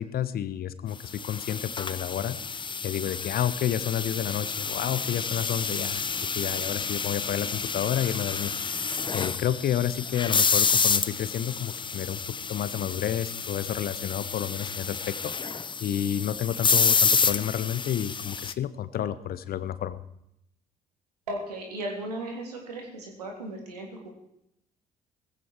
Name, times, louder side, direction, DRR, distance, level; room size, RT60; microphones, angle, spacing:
voice 1, 0.0-2.4 2.8-8.5 8.8-15.3 15.8-20.0, left 10 dB, 50° left, 14 dB, 1.1 m, -30 dB
sound 1, 1.1-18.5, left 5 dB, 25° left, 0.8 m, -29 dB
voice 2, 21.3-24.1, right 1 dB, 80° right, 1 dB, 3.3 m, -36 dB
18.5 x 15.5 x 4.6 m, 0.79 s
figure-of-eight pair, 50°, 20 cm